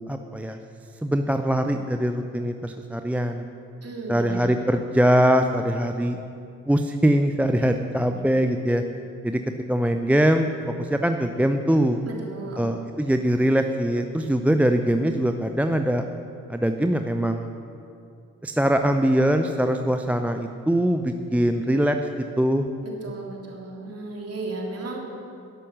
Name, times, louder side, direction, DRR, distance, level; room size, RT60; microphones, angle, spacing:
voice 1, 0.1-0.6 1.0-3.5 4.1-6.2 6.7-8.8 9.2-9.4 9.7-10.5 10.8-12.0 12.6-16.0 16.5-17.5 18.4-22.0 22.4-22.6, equal, 5° right, 6 dB, 0.6 m, -22 dB
voice 2, 3.8-4.7 7.9-8.2 12.1-12.7 22.8-25.0, right 2 dB, 35° right, -1 dB, 3.4 m, -35 dB
12.5 x 11.0 x 6.4 m, 2.6 s
figure-of-eight pair, 45°, 41 cm